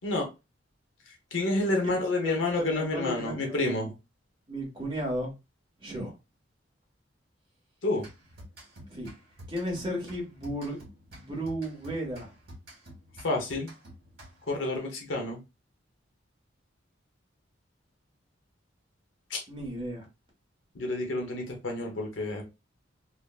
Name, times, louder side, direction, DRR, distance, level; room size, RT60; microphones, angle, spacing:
voice 1, 1.3-3.9 7.8-8.0 13.2-13.7 14.5-15.4 19.3-19.4 20.7-22.4, left 2 dB, 80° left, 0.8 m, -29 dB
voice 2, 2.2-3.9 4.5-5.3 5.8-6.1 8.9-9.1 9.5-10.8 11.1-12.3 19.5-20.0, equal, 25° right, 1.2 m, -34 dB
sound 1, 8.0-14.6, equal, 55° right, 1.4 m, -50 dB
3.3 x 2.0 x 2.3 m
head